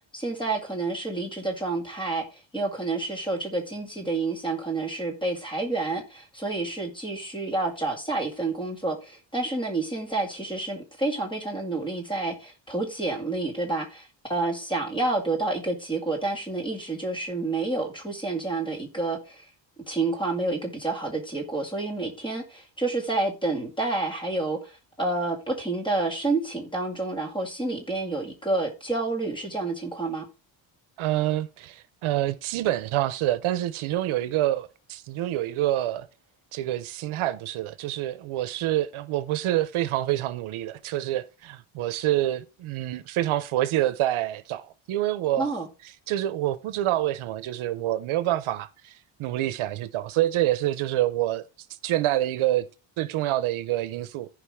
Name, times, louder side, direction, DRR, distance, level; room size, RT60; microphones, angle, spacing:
voice 1, 0.1-19.5 19.9-30.3 45.4-45.7, right 2 dB, 10° left, 2.1 m, -29 dB
voice 2, 31.0-36.1 36.5-45.5 46.1-51.4 51.8-52.7 53.0-54.3, right 14 dB, 80° right, 0.8 m, -27 dB
14.5 x 5.2 x 3.6 m
cardioid pair, 175°, 49 cm